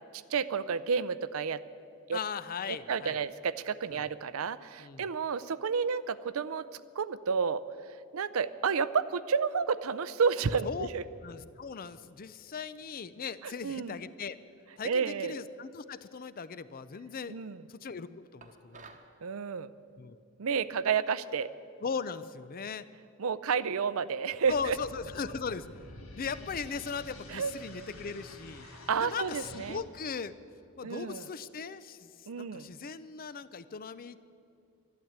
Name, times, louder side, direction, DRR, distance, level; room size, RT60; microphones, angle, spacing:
voice 1, 0.3-1.6 2.1-2.2 2.7-7.6 8.1-11.0 13.4-13.9 14.8-15.3 17.3-17.6 19.2-19.7 20.4-21.5 23.2-24.8 27.3-27.5 28.9-29.8 30.8-31.2 32.3-32.7, right 6 dB, 65° right, 16 dB, 0.5 m, -31 dB
voice 2, 2.1-3.2 3.9-4.1 4.8-5.1 10.6-10.9 11.2-14.4 14.8-17.4 17.7-18.9 20.0-20.2 21.8-22.9 24.5-25.7 26.2-28.7 29.0-30.3 30.8-34.2, left 5 dB, 40° left, 15 dB, 0.5 m, -38 dB
sound 1, 18.4-19.1, right 4 dB, 35° right, 1.0 m, -52 dB
sound 2, 24.4-29.7, left 2 dB, 65° left, 1.8 m, -48 dB
12.0 x 12.0 x 8.8 m, 2.5 s
head